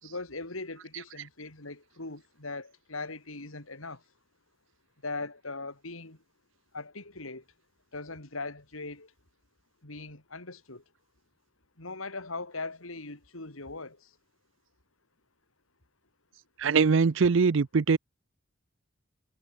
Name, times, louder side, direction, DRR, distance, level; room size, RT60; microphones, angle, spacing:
voice 1, 0.0-4.0 5.0-6.2 6.7-7.4 7.9-9.1 9.8-10.8 11.8-14.1, left 3 dB, 90° left, 4.4 m, -40 dB
voice 2, 16.6-18.0, right 5 dB, 65° right, 0.5 m, -22 dB
head